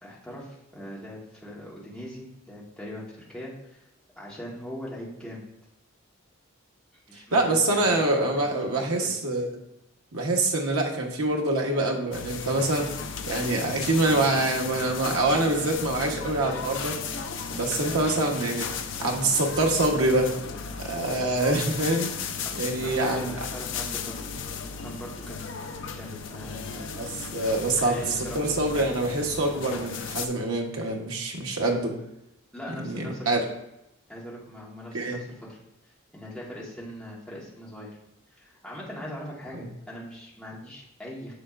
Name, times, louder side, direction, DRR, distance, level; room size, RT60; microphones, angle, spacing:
voice 1, 0.0-3.0 3.3-3.8 4.2-5.4 7.1-8.1 8.4-9.1 22.4-24.2 24.6-26.8 27.6-28.4 32.5-33.4 34.1-35.6 36.1-38.0 38.3-41.3, equal, 5° left, -6 dB, 1.4 m, -41 dB
voice 2, 7.3-9.5 10.1-12.9 13.3-17.0 17.5-20.3 20.8-23.3 26.9-28.0 28.3-32.0 32.8-33.4 34.9-35.2 39.6-39.7, right 2 dB, 90° right, 1 dB, 1.2 m, -25 dB
sound 1, 12.1-30.3, left 6 dB, 60° left, 0.6 m, -35 dB
6.8 x 6.7 x 2.5 m, 0.85 s
head